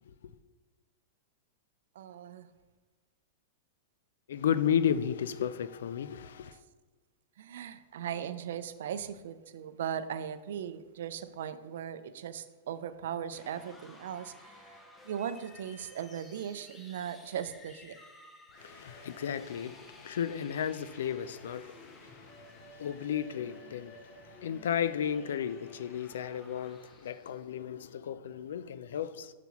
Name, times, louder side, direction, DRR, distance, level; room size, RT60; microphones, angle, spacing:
voice 1, 2.0-2.5 7.4-14.8 15.0-18.0, right 9 dB, 75° right, 0.4 m, -38 dB
voice 2, 4.3-6.6 18.6-29.3, left 9 dB, 85° left, 0.4 m, -34 dB
sound 1, 13.3-27.4, left 1 dB, 10° left, 0.7 m, -54 dB
7.0 x 5.9 x 3.0 m
supercardioid pair, 160°, 0 cm